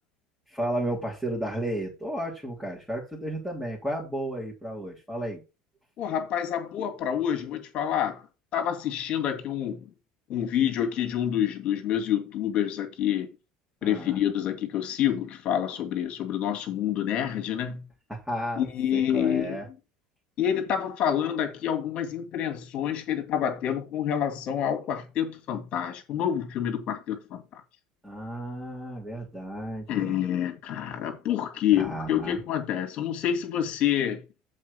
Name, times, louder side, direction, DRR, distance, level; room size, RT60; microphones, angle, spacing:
voice 1, 0.5-5.4 13.8-14.2 18.1-18.7 18.9-19.7 28.0-30.2 31.8-32.4, right 1 dB, 5° right, 3.3 m, -33 dB
voice 2, 6.0-8.2 8.5-9.9 10.3-13.3 13.8-17.8 18.6-19.6 20.4-27.6 29.9-34.2, left 10 dB, 50° left, 2.3 m, -28 dB
7.6 x 4.4 x 6.8 m
supercardioid pair, 100°, 2 cm